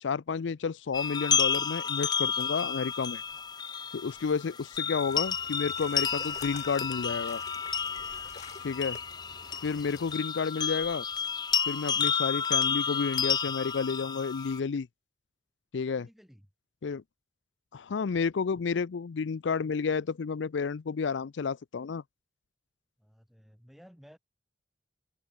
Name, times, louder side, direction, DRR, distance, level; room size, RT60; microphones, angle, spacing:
voice 1, 0.0-3.2 3.9-7.4 8.6-9.0 9.6-11.0 11.7-14.9 15.7-16.1 16.8-17.0 17.7-22.0, left 5 dB, 85° left, 0.5 m, -31 dB
sound 1, 0.9-14.6, left 7 dB, 25° left, 0.5 m, -31 dB
sound 2, 5.1-10.2, left 5 dB, 40° left, 1.2 m, -48 dB
voice 2, 15.9-16.4 23.0-24.2, equal, ahead, 7.1 m, -56 dB
open air
head